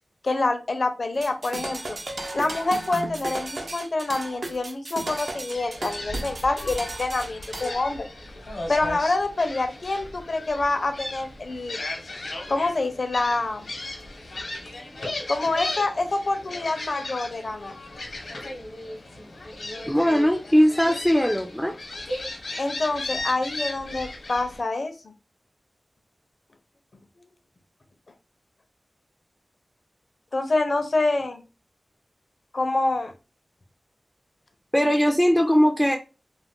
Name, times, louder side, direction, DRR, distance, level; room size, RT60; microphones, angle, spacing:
voice 1, 0.2-2.0 2.3-8.1 8.7-11.8 12.5-13.7 15.3-17.7 22.6-25.1 30.3-31.4 32.5-33.1, left 2 dB, 55° left, 0.6 m, -26 dB
sound 1, 1.2-7.7, right 2 dB, 60° right, 0.5 m, -35 dB
Gull seagull, 5.5-24.6, left 2 dB, 80° left, 0.9 m, -36 dB
voice 2, 19.9-21.7 34.7-36.0, equal, ahead, 0.4 m, -20 dB
2.4 x 2.1 x 3.5 m
wide cardioid pair, 80°, 0 cm